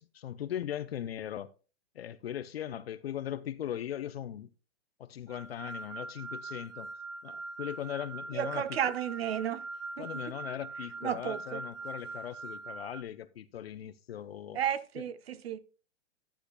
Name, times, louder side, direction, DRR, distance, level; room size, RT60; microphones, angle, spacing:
voice 1, 0.0-1.5 1.9-4.5 5.0-6.9 7.2-8.8 10.0-14.6, left 10 dB, 55° left, 0.5 m, -39 dB
sound 1, 5.3-13.0, right 3 dB, 75° right, 1.7 m, -42 dB
voice 2, 8.3-9.6 10.0-10.1 11.0-11.6 14.5-15.6, right 9 dB, 55° right, 0.7 m, -33 dB
10.0 x 10.0 x 2.2 m
hypercardioid pair, 170°, 37 cm